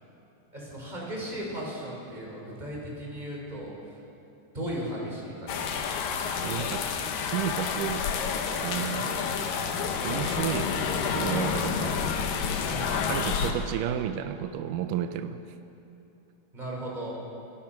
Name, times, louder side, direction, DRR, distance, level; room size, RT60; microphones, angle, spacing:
voice 1, 0.5-4.0 4.5-5.9 8.7-8.9 12.7-13.0 16.5-17.2, equal, 10° right, -3 dB, 5.4 m, -36 dB
sound 1, 5.5-13.5, left 6 dB, 85° left, 3.0 m, -29 dB
voice 2, 6.4-6.9 7.2-8.1 8.6-9.5 10.0-10.7 11.1-12.1 13.1-15.4, right 10 dB, 80° right, 9 dB, 2.3 m, -32 dB
28.5 x 18.5 x 5.9 m, 2.9 s
omnidirectional pair, 3.8 m